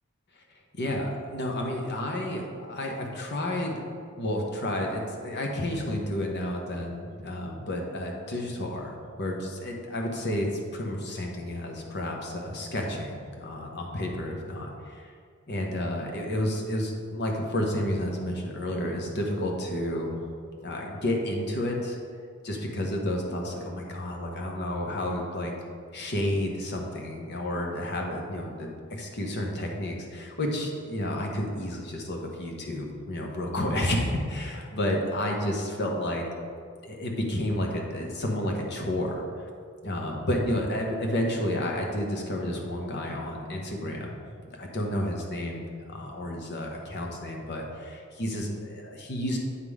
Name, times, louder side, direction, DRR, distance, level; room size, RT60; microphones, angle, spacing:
voice 1, 0.7-3.8 4.2-15.1 15.5-20.1 20.6-22.0 22.4-25.5 25.9-36.2 36.8-39.2 39.8-44.2 44.5-49.4, left 1 dB, 50° left, 1 dB, 1.0 m, -31 dB
8.4 x 3.7 x 4.8 m, 2.2 s
head